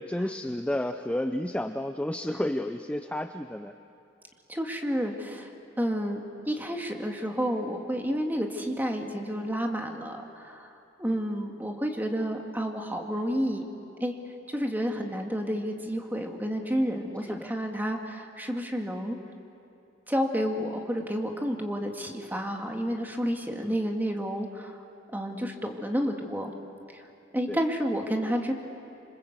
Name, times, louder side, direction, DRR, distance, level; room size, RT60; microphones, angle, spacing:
voice 1, 0.0-3.7 11.1-11.2 17.3-17.5 23.6-23.8 27.5-27.6, left 1 dB, 5° left, 7 dB, 0.5 m, -31 dB
voice 2, 4.5-5.5 5.8-6.2 6.5-10.7 11.0-13.7 14.0-14.1 14.5-19.2 20.1-24.8 25.1-26.5 27.3-28.5, equal, 10° right, 2 dB, 2.0 m, -30 dB
27.0 x 25.5 x 8.0 m, 2.7 s
head